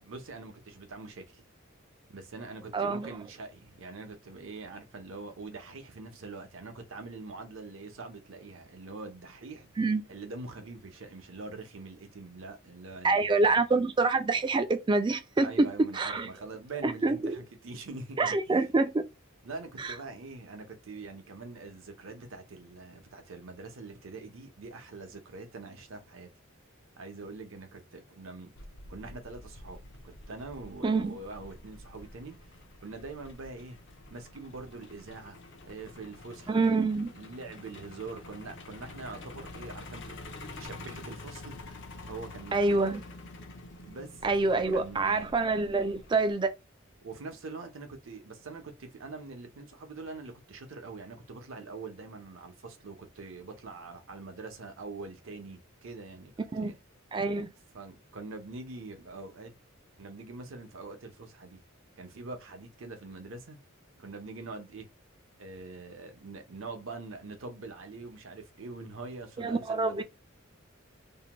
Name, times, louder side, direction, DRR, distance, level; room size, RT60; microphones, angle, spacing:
voice 1, 0.0-1.4 2.1-9.7 10.1-13.6 15.4-18.6 19.4-26.3 27.0-28.5 28.9-32.4 32.8-33.8 34.1-35.4 35.6-36.7 37.2-40.2 40.6-41.8 42.1-42.9 43.8-45.3 47.0-56.7 57.7-59.5 60.0-61.6 62.0-63.6 64.0-64.9 65.4-70.0, right 3 dB, 65° right, 0.7 m, -44 dB
voice 2, 2.7-3.1 9.8-10.0 13.0-16.3 16.8-17.4 18.2-19.0 19.8-19.9 30.8-31.2 36.5-37.1 42.5-43.0 44.2-46.5 56.5-56.7 57.1-57.5 69.4-70.0, right 3 dB, 20° right, 0.3 m, -26 dB
Truck, 28.6-46.3, left 2 dB, 60° left, 0.5 m, -48 dB
2.7 x 2.1 x 2.9 m
head